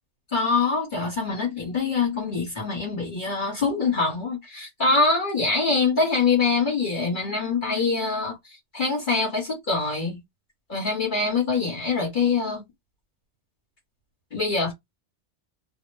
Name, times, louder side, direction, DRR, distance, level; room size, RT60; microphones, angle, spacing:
voice 1, 0.3-8.4 8.7-10.2 10.7-12.6 14.3-14.7, left 4 dB, 45° left, 1.1 m, -24 dB
2.4 x 2.1 x 3.2 m
omnidirectional pair, 1.2 m